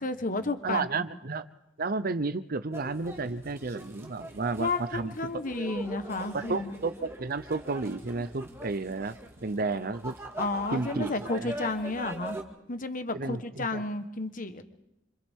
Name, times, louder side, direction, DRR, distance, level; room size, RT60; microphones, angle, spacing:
voice 1, 0.0-0.9 4.6-6.8 10.4-12.4 12.7-14.6, left 3 dB, 45° left, 9 dB, 1.3 m, -32 dB
voice 2, 0.6-1.5 1.8-5.4 6.3-9.2 9.4-10.2 10.7-11.5 13.1-13.8, right 3 dB, 50° right, 13 dB, 0.8 m, -32 dB
sound 1, 2.7-12.4, right 1 dB, 15° right, 2.1 m, -42 dB
28.0 x 26.5 x 3.7 m, 0.87 s
head